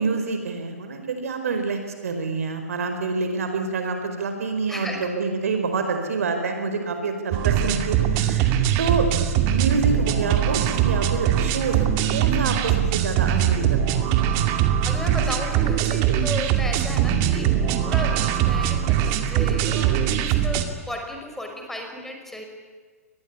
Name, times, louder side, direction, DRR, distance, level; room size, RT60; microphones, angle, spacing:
voice 1, 0.0-9.1 9.5-14.0, right 4 dB, 65° right, 6 dB, 4.8 m, -27 dB
voice 2, 4.7-5.1 14.6-17.5 17.8-22.4, left 1 dB, 5° left, 3 dB, 5.2 m, -34 dB
sound 1, 7.3-20.6, right 10 dB, 40° right, 2.5 m, -22 dB
25.0 x 20.0 x 9.9 m, 1.5 s
figure-of-eight pair, 115°, 8 cm